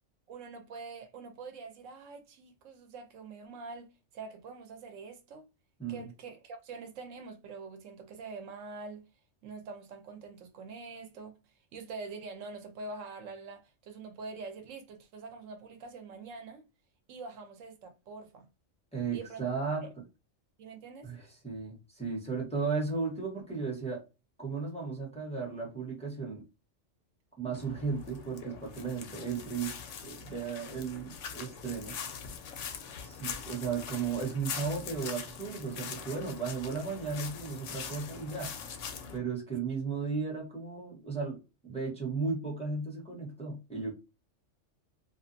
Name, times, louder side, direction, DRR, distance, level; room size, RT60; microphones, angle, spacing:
voice 1, 0.3-5.5 5.9-9.1 9.4-16.6 17.1-18.5 19.1-19.5 19.8-19.9 20.6-21.1, right 4 dB, 80° right, 1.0 m, -45 dB
voice 2, 18.9-19.9 21.0-24.0 24.4-26.4 27.4-29.7 30.0-31.9 33.0-38.5 39.1-43.9, right 5 dB, 5° left, 0.9 m, -35 dB
sound 1, 27.5-39.2, left 6 dB, 75° left, 0.9 m, -42 dB
2.5 x 2.4 x 2.5 m
omnidirectional pair, 1.3 m